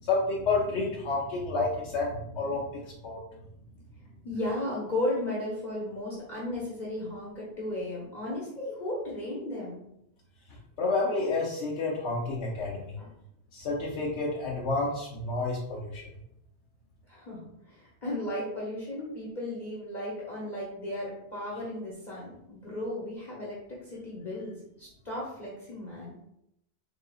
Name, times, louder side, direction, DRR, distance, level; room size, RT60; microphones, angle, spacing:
voice 1, 0.0-3.2 10.8-13.0 13.5-16.1, left 3 dB, 85° left, -4 dB, 1.0 m, -30 dB
voice 2, 4.2-9.8 13.0-13.1 17.1-26.1, left 1 dB, 45° left, -6 dB, 1.0 m, -35 dB
3.9 x 3.8 x 2.3 m, 0.79 s
omnidirectional pair, 1.1 m